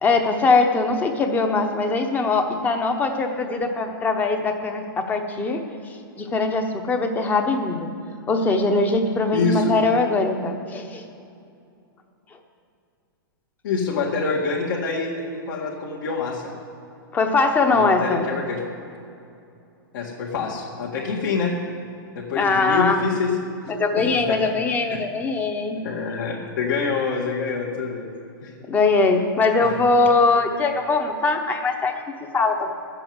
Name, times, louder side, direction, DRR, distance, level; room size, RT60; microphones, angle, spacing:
voice 1, 0.0-5.6 6.2-7.9 8.3-11.0 17.1-18.2 22.3-23.0 23.8-25.8 28.7-32.0 32.3-32.7, left 3 dB, 15° left, 5 dB, 1.0 m, -21 dB
voice 2, 9.3-9.8 13.6-16.5 17.7-18.6 19.9-21.5 22.2-23.3 23.6-24.4 25.8-28.1 28.4-28.5 29.6-29.7, left 4 dB, 60° left, -5 dB, 1.8 m, -26 dB
12.0 x 7.8 x 7.7 m, 2.5 s
hypercardioid pair, 150°, 12 cm